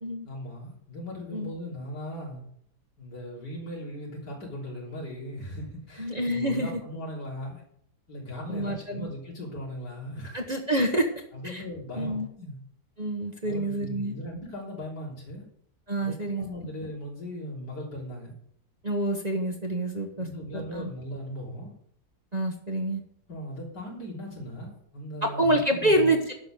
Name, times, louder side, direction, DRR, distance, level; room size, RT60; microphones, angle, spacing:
voice 1, 0.2-2.4 3.0-7.6 8.1-10.4 11.3-12.6 13.4-15.5 16.0-18.3 20.2-21.7 23.3-26.1, equal, 80° left, -3 dB, 4.0 m, -38 dB
voice 2, 6.0-6.8 8.5-9.1 10.3-11.1 11.4-11.6 12.0-12.3 13.0-14.2 15.9-16.4 18.8-20.3 20.5-20.9 22.3-23.0 25.2-26.3, right 1 dB, 30° right, 2 dB, 1.0 m, -27 dB
11.5 x 6.1 x 6.6 m, 0.69 s
omnidirectional pair, 1.8 m